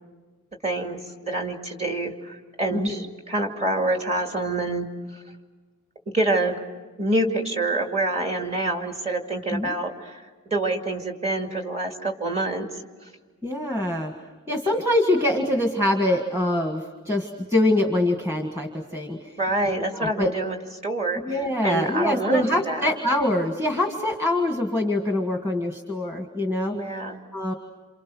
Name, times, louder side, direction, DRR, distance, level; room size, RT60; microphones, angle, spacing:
voice 1, 0.6-4.9 5.1-5.2 6.1-6.6 7.0-12.7 19.4-20.6 20.8-23.0 26.7-27.2, right 2 dB, 30° right, 3 dB, 2.4 m, -27 dB
voice 2, 13.4-14.1 14.5-19.3 19.9-20.3 21.3-26.8 27.3-27.5, left 1 dB, 10° right, 2 dB, 1.6 m, -24 dB
28.5 x 28.0 x 6.2 m, 1.4 s
head